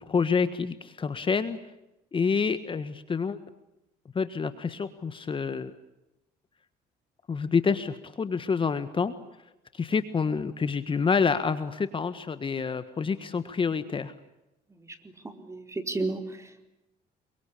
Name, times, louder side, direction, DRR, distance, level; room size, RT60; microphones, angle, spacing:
voice 1, 0.0-1.6 2.1-3.4 4.1-5.7 7.3-9.1 9.7-14.1, left 5 dB, 30° left, 12 dB, 1.6 m, -28 dB
voice 2, 15.2-16.6, right 2 dB, 15° right, 7 dB, 4.5 m, -33 dB
28.5 x 24.0 x 8.5 m, 0.91 s
cardioid pair, 110°, 17 cm